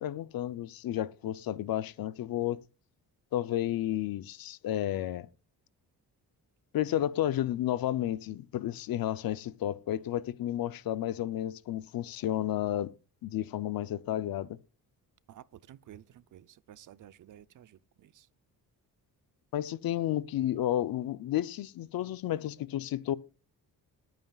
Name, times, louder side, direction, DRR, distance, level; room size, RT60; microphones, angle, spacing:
voice 1, 0.0-2.6 3.3-5.3 6.7-12.9 13.2-14.6 19.5-23.2, left 12 dB, 70° left, 0.7 m, -32 dB
voice 2, 15.3-18.3, right 11 dB, 55° right, 0.6 m, -53 dB
20.5 x 9.2 x 2.4 m
cardioid pair, 120°, 37 cm